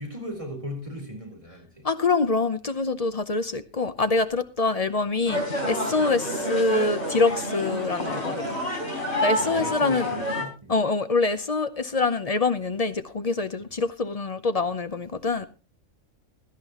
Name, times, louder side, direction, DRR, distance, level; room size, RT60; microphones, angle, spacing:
voice 1, 0.0-1.9 9.4-10.8 13.6-13.7, equal, 25° right, 4.2 m, -37 dB
voice 2, 1.8-8.4 9.2-10.1 10.7-15.5, left 3 dB, 35° left, 0.7 m, -25 dB
sound 1, 5.3-10.4, equal, 55° left, 4.2 m, -29 dB
17.0 x 11.5 x 3.0 m
omnidirectional pair, 1.3 m